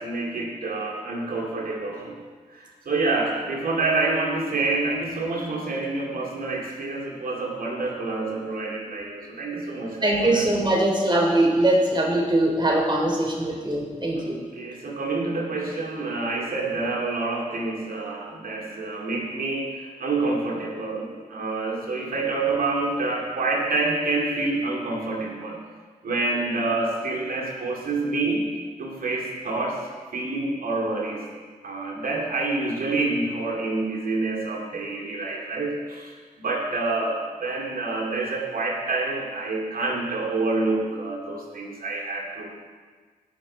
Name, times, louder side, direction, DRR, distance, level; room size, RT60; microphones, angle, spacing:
voice 1, 0.0-2.2 2.5-10.5 13.4-13.5 14.1-25.6 26.0-28.4 28.8-29.8 30.1-31.2 31.6-42.5, right 3 dB, 80° right, -2 dB, 2.3 m, -27 dB
voice 2, 10.0-14.4, right 1 dB, 30° right, -1 dB, 3.5 m, -22 dB
16.5 x 6.1 x 4.4 m, 1.5 s
supercardioid pair, 40°, 15 cm